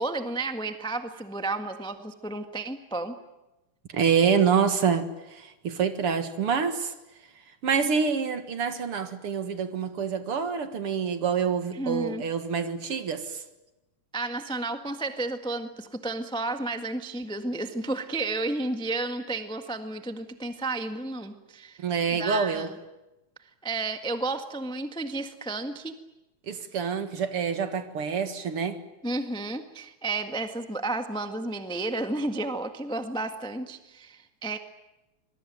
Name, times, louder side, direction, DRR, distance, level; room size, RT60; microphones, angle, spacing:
voice 1, 0.0-3.1 11.7-12.2 14.1-21.8 22.1-22.8 23.6-26.0 29.0-34.6, right 2 dB, 5° left, 7 dB, 0.7 m, -32 dB
voice 2, 3.9-6.9 7.6-13.4 21.8-22.7 26.5-28.8, right 6 dB, 55° right, 9 dB, 2.4 m, -26 dB
26.0 x 22.0 x 9.3 m, 0.99 s
omnidirectional pair, 3.4 m